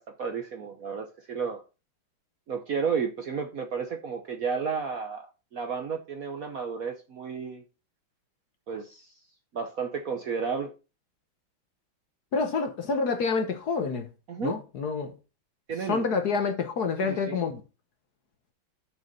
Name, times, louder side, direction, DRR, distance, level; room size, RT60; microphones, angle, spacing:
voice 1, 0.0-1.6 2.5-5.3 5.5-7.6 8.7-9.1 9.5-10.7 14.3-14.5 15.7-16.1 17.0-17.4, right 6 dB, 55° right, 1.0 m, -32 dB
voice 2, 12.3-14.1 14.4-15.1 15.9-17.6, left 4 dB, 55° left, 1.4 m, -28 dB
6.6 x 6.5 x 5.2 m
omnidirectional pair, 2.3 m